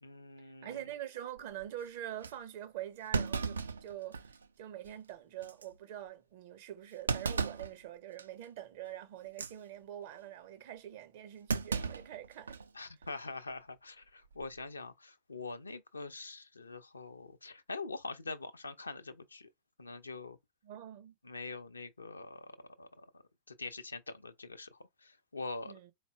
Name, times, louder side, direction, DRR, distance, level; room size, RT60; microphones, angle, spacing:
voice 1, 0.0-0.8 12.7-19.5 19.8-20.4 21.2-25.7, left 3 dB, 80° left, 0.5 m, -44 dB
voice 2, 0.6-12.6 20.6-21.1 25.6-25.9, right 11 dB, 50° right, 0.7 m, -45 dB
Thump thud, 1.4-1.6 2.2-2.3 3.1-4.5 4.8-4.9 5.4-5.6 7.1-7.7 8.2-8.4 9.2-9.5 11.5-12.7 13.0-13.1 14.2-14.6, right 4 dB, 70° right, 0.3 m, -35 dB
4.1 x 2.1 x 3.4 m
figure-of-eight pair, 90°, 0 cm